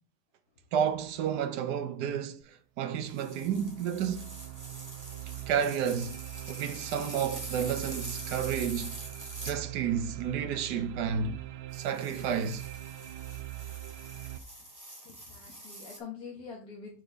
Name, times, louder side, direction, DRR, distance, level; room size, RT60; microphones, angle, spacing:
voice 1, 0.7-4.4 5.5-6.2 6.5-9.0 9.4-11.4 11.7-12.6, right 8 dB, 85° right, 1.3 m, -31 dB
sound 1, 2.4-2.5 3.0-14.4, right 16 dB, 60° right, 0.6 m, -42 dB
sound 2, 3.1-9.6 11.7-16.0, right 1 dB, 10° right, 1.9 m, -45 dB
voice 2, 15.1-17.0, left 5 dB, 65° left, 1.9 m, -45 dB
6.8 x 6.1 x 3.4 m
omnidirectional pair, 1.7 m